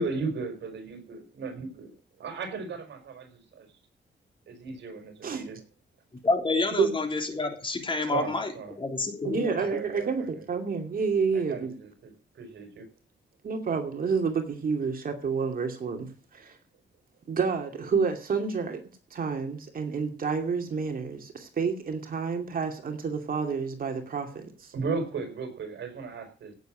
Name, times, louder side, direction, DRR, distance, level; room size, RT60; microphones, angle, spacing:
voice 1, 0.0-1.9 2.2-3.7 4.5-5.6 8.1-8.7 9.5-10.3 11.3-12.9 24.7-26.5, right 4 dB, 75° right, 4.9 m, -36 dB
voice 2, 6.2-9.6, left 3 dB, 25° left, 3.3 m, -29 dB
voice 3, 9.2-11.7 13.4-16.6 17.3-18.8 19.1-24.7, right 5 dB, 50° right, 2.6 m, -29 dB
17.0 x 7.5 x 6.2 m
wide cardioid pair, 135°, 19 cm